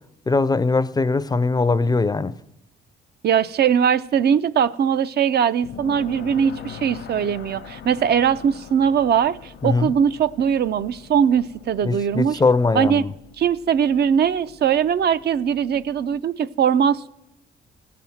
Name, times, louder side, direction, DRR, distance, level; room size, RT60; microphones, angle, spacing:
voice 1, 0.3-2.3 9.6-9.9 11.8-13.1, left 3 dB, 20° left, 0.5 m, -20 dB
voice 2, 3.2-12.4 12.7-13.1 13.4-17.1, right 8 dB, 55° right, 0.5 m, -20 dB
sound 1, 5.6-16.2, left 7 dB, 65° left, 0.9 m, -42 dB
16.0 x 5.9 x 7.1 m
cardioid pair, 90°, 20 cm